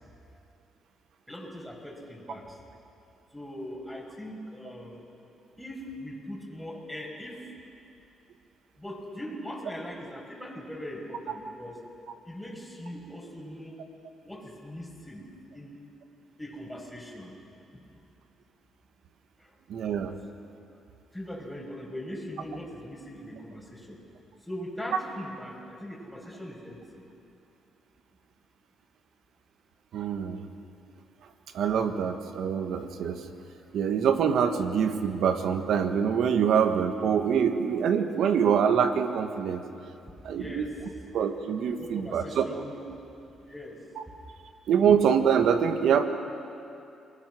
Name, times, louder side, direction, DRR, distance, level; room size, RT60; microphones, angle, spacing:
voice 1, 1.3-2.6 3.3-5.0 5.6-7.4 8.8-11.8 12.3-13.8 14.2-15.3 15.5-15.8 16.4-17.4 17.7-18.0 19.4-19.6 21.1-24.0 24.4-27.1 33.6-33.8 40.3-40.7 41.8-43.0 43.4-43.8, equal, ahead, -2 dB, 6.0 m, -40 dB
voice 2, 19.7-20.1 29.9-30.4 31.5-33.2 33.7-39.6 40.2-40.7 41.1-42.5 44.0-44.1 44.7-46.1, right 7 dB, 75° right, 7 dB, 1.7 m, -25 dB
28.5 x 21.0 x 6.3 m, 2.6 s
cardioid pair, 90°, 0 cm